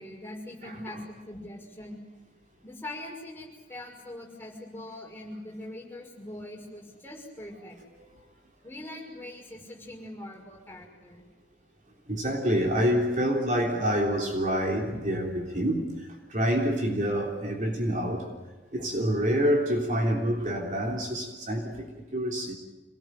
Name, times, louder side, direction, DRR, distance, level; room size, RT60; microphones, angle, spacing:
voice 1, 0.0-2.0 2.6-7.8 8.6-11.2, left 1 dB, 10° left, -2 dB, 6.0 m, -42 dB
voice 2, 0.6-1.0 12.1-18.3 18.7-22.5, equal, 40° right, 1 dB, 3.4 m, -27 dB
27.0 x 19.5 x 9.5 m, 1.2 s
head